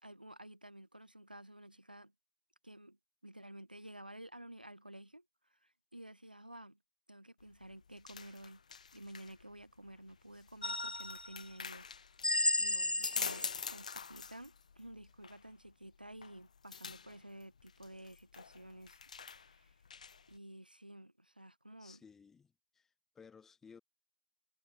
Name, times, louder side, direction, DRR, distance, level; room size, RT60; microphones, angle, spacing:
voice 1, 0.0-2.1 2.6-3.0 3.2-6.8 7.1-8.6 8.9-11.9 12.5-19.0 19.4-19.8 20.3-22.0, right 1 dB, 85° right, 2.5 m, -52 dB
sound 1, 7.4-20.4, left 6 dB, 55° left, 2.7 m, -47 dB
Collectable videogame sound compilation, 10.6-11.4 12.2-13.7, left 2 dB, 80° left, 0.9 m, -34 dB
voice 2, 21.8-23.8, left 6 dB, 5° left, 4.8 m, -58 dB
figure-of-eight pair, 135°, 5 cm